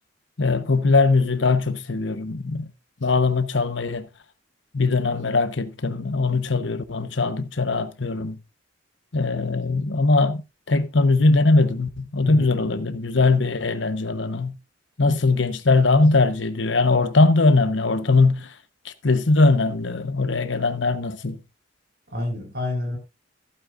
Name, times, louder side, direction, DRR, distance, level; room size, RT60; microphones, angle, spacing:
voice 1, 0.4-2.7 3.0-4.1 4.7-8.4 9.1-10.4 10.7-14.6 15.0-18.5 18.8-21.4, left 3 dB, 80° left, 1.1 m, -20 dB
voice 2, 12.2-12.7 22.1-23.0, left 2 dB, 60° right, 5.1 m, -29 dB
15.0 x 8.8 x 2.5 m
head